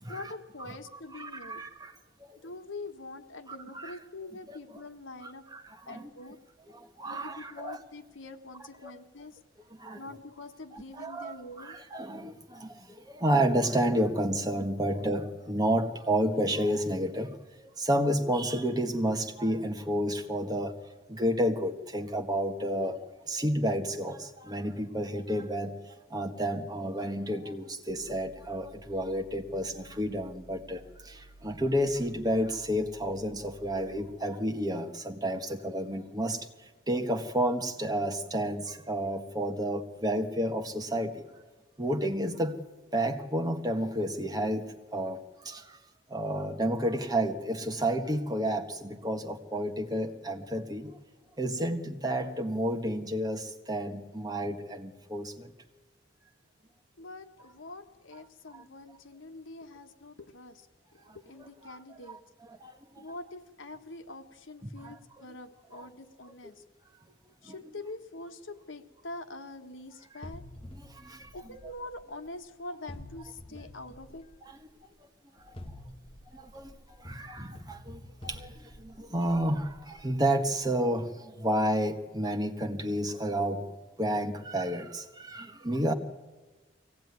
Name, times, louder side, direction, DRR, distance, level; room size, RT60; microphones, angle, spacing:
voice 1, 0.1-1.6 2.4-5.4 5.9-6.4 7.1-9.4 10.0-11.8 14.8-15.0 57.0-60.6 60.9-62.2 63.0-66.6 67.4-70.4 71.3-74.3, left 2 dB, 80° left, 7 dB, 1.5 m, -44 dB
voice 2, 1.1-2.4 3.5-4.0 4.5-4.6 5.2-6.1 6.7-7.8 8.8-8.9 9.7-10.0 10.7-17.4 17.6-20.7 21.1-41.2 41.8-42.6 42.9-45.8 46.1-51.0 51.4-55.5 58.5-58.6 61.1-61.2 61.7-61.8 62.1-62.2 62.5-63.0 64.7-65.2 65.7-65.9 67.4-67.5 70.8-71.3 73.5-73.6 74.4-74.6 75.4-75.5 76.3-83.7 84.0-85.9, right 1 dB, 20° right, 5 dB, 1.5 m, -31 dB
sound 1, 27.9-34.1, right 1 dB, 60° left, 7.9 m, -54 dB
sound 2, 70.2-72.4 72.9-74.7 75.4-80.5, left 1 dB, 30° left, 1.1 m, -48 dB
23.5 x 17.5 x 9.6 m, 1.3 s
head